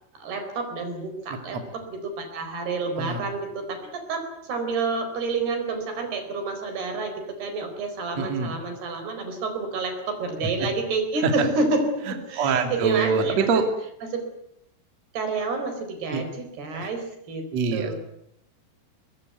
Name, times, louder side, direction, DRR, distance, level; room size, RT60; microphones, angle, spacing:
voice 1, 0.1-7.1 7.4-13.5 14.0-14.2 15.1-17.4 17.7-18.0, right 3 dB, 60° right, 6 dB, 6.2 m, -29 dB
voice 2, 8.2-8.5 11.2-11.3 12.4-13.7 16.1-16.2 16.8-16.9 17.5-17.9, right 5 dB, 40° right, 6 dB, 3.3 m, -24 dB
23.5 x 21.0 x 9.3 m, 0.76 s
omnidirectional pair, 5.4 m